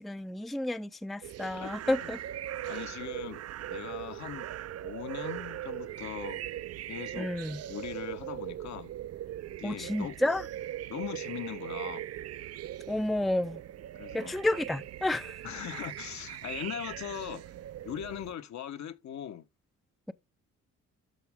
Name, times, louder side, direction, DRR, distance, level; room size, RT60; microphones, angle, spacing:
voice 1, 0.0-2.2 7.2-7.6 9.6-10.5 12.9-13.6 14.1-15.4, left 1 dB, ahead, 0.5 m, -31 dB
sound 1, 1.2-18.3, right 12 dB, 55° right, 0.5 m, -40 dB
voice 2, 1.6-2.1 2.7-4.5 4.8-6.4 6.9-7.3 7.7-8.9 9.5-10.2 10.9-12.0 13.9-14.3 15.4-17.4 17.8-19.5, left 10 dB, 65° left, 1.3 m, -40 dB
13.0 x 4.9 x 3.6 m
cardioid pair, 90°, 30 cm